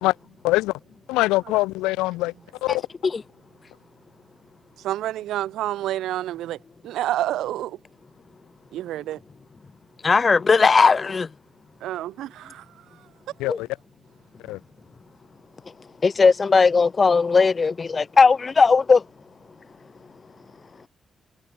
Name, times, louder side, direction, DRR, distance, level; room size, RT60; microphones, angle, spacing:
voice 1, 1.1-2.3 2.6-2.8 13.4-13.7 14.5-14.6, left 20 dB, 85° left, 0.6 m, -23 dB
voice 2, 4.8-6.6 6.8-7.8 8.7-9.2 11.8-12.6, right 13 dB, 75° right, 0.9 m, -28 dB
voice 3, 10.0-11.3 13.5-13.6 16.0-19.1, left 4 dB, 45° left, 0.7 m, -17 dB
hypercardioid pair, 40°, 0 cm